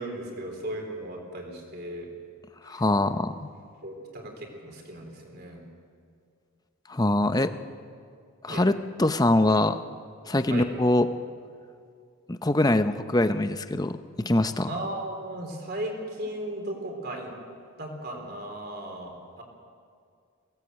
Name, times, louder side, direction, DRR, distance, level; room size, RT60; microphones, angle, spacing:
voice 1, 0.0-2.1 2.7-2.8 3.8-5.7 7.3-7.5 8.5-8.6 10.5-10.7 14.7-17.3 17.8-19.4, right 1 dB, 45° right, 2 dB, 3.9 m, -36 dB
voice 2, 2.7-3.4 6.9-7.5 8.4-9.8 10.3-11.1 12.3-14.0 14.2-14.8, left 1 dB, 15° left, 10 dB, 0.7 m, -23 dB
22.5 x 17.5 x 8.1 m, 2.3 s
head